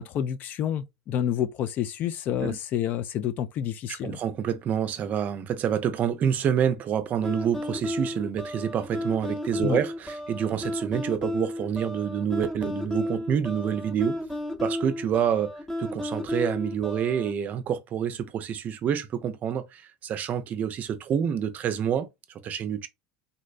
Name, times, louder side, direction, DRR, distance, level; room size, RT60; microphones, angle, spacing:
voice 1, 0.0-4.2 9.6-9.8, left 9 dB, 50° left, 0.3 m, -29 dB
voice 2, 4.0-14.2 14.6-15.5 15.8-22.1 22.4-22.9, right 8 dB, 45° right, 0.5 m, -27 dB
sound 1, 7.2-17.3, left 1 dB, 10° left, 0.7 m, -33 dB
3.8 x 2.0 x 2.5 m
hypercardioid pair, 90°, 4 cm